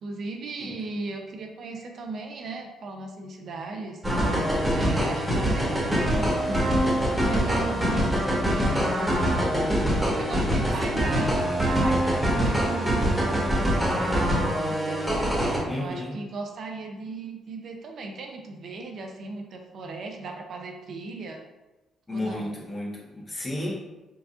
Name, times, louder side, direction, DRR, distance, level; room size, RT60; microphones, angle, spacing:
voice 1, 0.0-4.0 4.7-9.4 10.1-15.0 15.7-21.4 22.1-22.6, right 3 dB, 60° right, 2 dB, 0.7 m, -37 dB
sound 1, 4.0-15.6, equal, 5° right, 1.5 m, -24 dB
voice 2, 15.6-16.1 22.1-23.7, left 1 dB, 30° left, -3 dB, 1.3 m, -32 dB
4.7 x 4.0 x 2.5 m, 1.1 s
cardioid pair, 90°, 0 cm